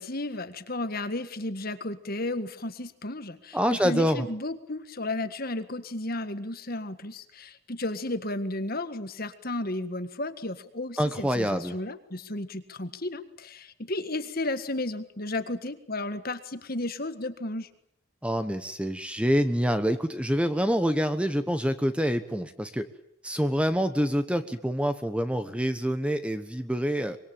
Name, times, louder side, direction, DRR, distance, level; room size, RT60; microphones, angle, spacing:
voice 1, 0.0-17.7, left 2 dB, 45° left, 10 dB, 1.7 m, -33 dB
voice 2, 3.5-4.2 11.0-11.7 18.2-22.9 23.2-27.2, equal, 5° right, 10 dB, 1.1 m, -26 dB
25.0 x 23.0 x 8.9 m, 0.71 s
head